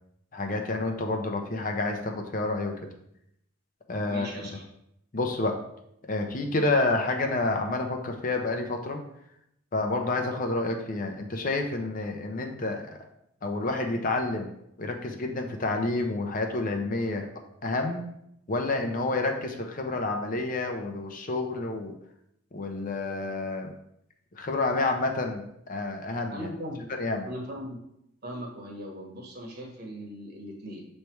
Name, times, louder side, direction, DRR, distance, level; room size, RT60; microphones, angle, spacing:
voice 1, 0.3-2.7 3.9-4.3 5.1-5.6 6.1-9.0 9.7-13.0 13.4-14.5 14.8-17.3 17.6-18.0 18.5-21.9 22.5-23.7 24.4-26.5 26.9-27.3, left 2 dB, 40° left, 4 dB, 0.7 m, -29 dB
voice 2, 4.1-4.6 26.3-26.9 27.2-27.8 28.2-30.9, equal, 50° right, 0 dB, 1.4 m, -39 dB
6.7 x 3.3 x 4.5 m, 0.77 s
head